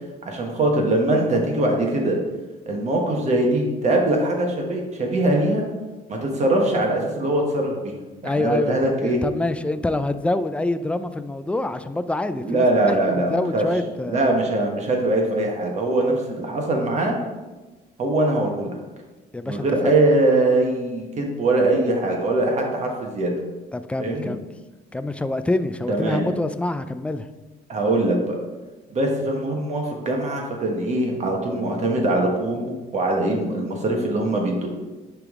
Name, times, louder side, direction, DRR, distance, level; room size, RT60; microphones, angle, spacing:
voice 1, 0.2-2.2 2.7-5.7 6.1-7.9 8.2-9.2 12.4-13.6 14.1-17.2 18.0-18.8 19.5-23.3 24.0-24.3 25.9-26.2 27.7-28.4 28.9-34.7, right 2 dB, 45° right, 1 dB, 1.3 m, -22 dB
voice 2, 8.2-14.2 19.3-19.9 23.7-24.4 24.9-27.3, left 2 dB, 5° left, 11 dB, 0.3 m, -26 dB
10.0 x 3.5 x 3.7 m, 1.2 s
cardioid pair, 110°, 17 cm